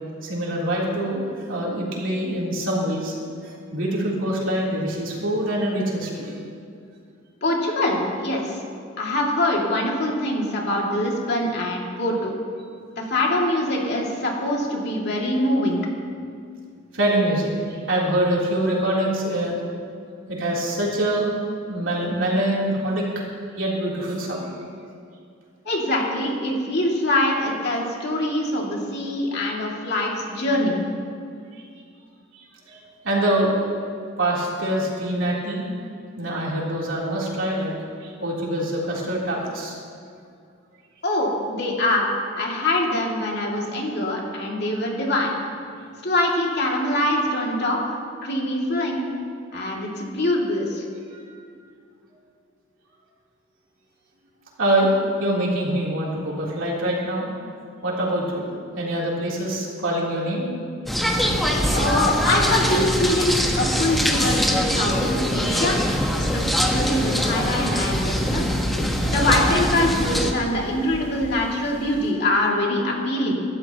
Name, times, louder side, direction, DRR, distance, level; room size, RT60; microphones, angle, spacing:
voice 1, 0.2-3.1 3.4-6.3 16.9-19.6 20.3-21.3 21.7-23.0 23.6-24.5 31.6-31.7 32.3-32.8 33.0-33.5 34.2-35.7 36.2-37.7 38.0-39.8 51.1-51.4 54.6-57.3 57.8-58.5 58.8-60.5, right 1 dB, 70° right, -5 dB, 3.7 m, -24 dB
voice 2, 7.4-8.6 9.0-12.3 13.0-15.8 25.6-30.8 41.0-42.1 42.4-45.4 46.0-47.8 48.2-49.0 49.5-50.8 61.7-65.8 66.2-68.5 69.1-73.3, left 1 dB, 55° left, -2 dB, 2.6 m, -24 dB
sound 1, 60.9-70.3, equal, ahead, 1.4 m, -23 dB
Thunder, 61.3-72.1, equal, 20° right, 3.2 m, -33 dB
25.0 x 13.0 x 3.1 m, 2.3 s
head